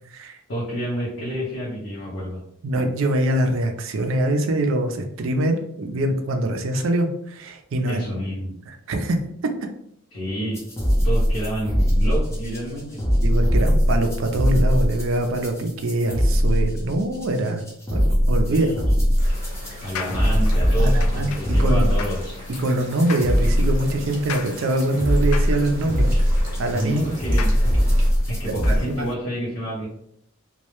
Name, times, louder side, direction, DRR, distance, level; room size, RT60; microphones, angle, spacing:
voice 1, 0.5-2.4 7.9-8.6 10.1-10.6 11.0-13.0 18.5-19.0 19.8-22.4 26.7-27.5 28.3-29.9, equal, 55° left, -7 dB, 0.7 m, -29 dB
voice 2, 2.6-8.0 8.7-9.2 13.2-17.6 17.9-18.8 20.8-21.9 22.6-26.1 26.6-27.0 28.7-29.0, right 1 dB, 65° right, 5 dB, 0.4 m, -24 dB
sound 1, 10.5-28.8, equal, 15° left, 0.4 m, -21 dB
sound 2, 19.2-29.1, left 6 dB, 85° left, 0.3 m, -39 dB
sound 3, 19.2-28.1, right 1 dB, 40° right, 0.8 m, -42 dB
2.2 x 2.0 x 2.9 m, 0.71 s
head